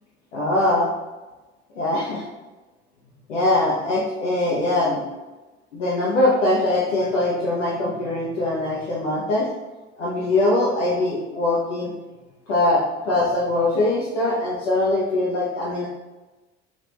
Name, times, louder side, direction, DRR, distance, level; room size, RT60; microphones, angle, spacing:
voice 1, 0.3-0.9 1.7-2.2 3.3-5.2 5.7-9.5 10.0-11.9 12.5-15.9, left 2 dB, 85° left, -5 dB, 0.6 m, -22 dB
3.4 x 2.4 x 3.0 m, 1.1 s
hypercardioid pair, 55°, 35 cm